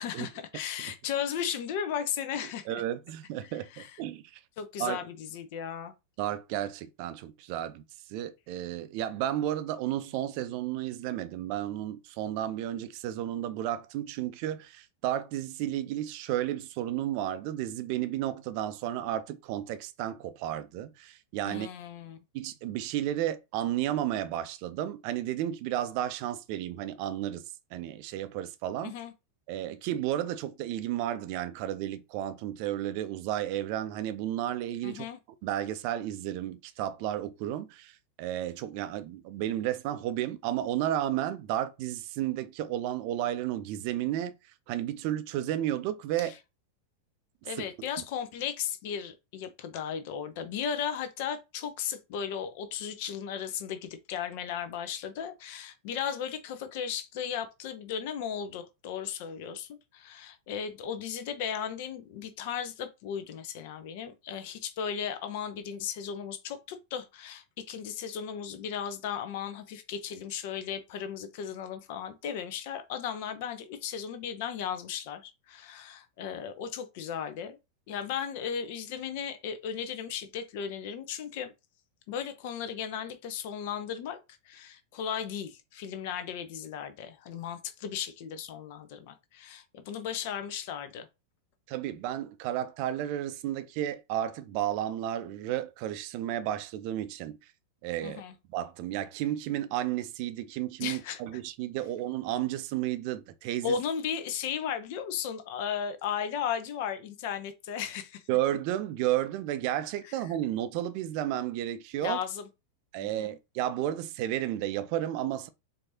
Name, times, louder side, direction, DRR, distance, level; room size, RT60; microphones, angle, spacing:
voice 1, 0.0-2.8 3.7-3.9 4.6-5.9 21.4-22.2 28.8-29.1 34.8-35.2 46.2-46.3 47.4-77.6 77.9-81.5 82.1-84.2 84.4-91.1 98.0-98.3 100.8-101.2 103.6-108.2 112.0-112.5 113.0-113.4, left 8 dB, 50° left, 0.7 m, -36 dB
voice 2, 2.7-4.4 4.8-5.0 6.2-7.8 8.1-21.7 22.3-28.9 29.5-35.1 35.4-46.4 47.4-47.6 48.0-48.1 91.7-97.5 97.8-98.2 98.5-103.8 108.3-112.2 112.9-115.5, right 12 dB, 45° right, 0.4 m, -32 dB
4.5 x 2.7 x 2.7 m
figure-of-eight pair, 90°, 0 cm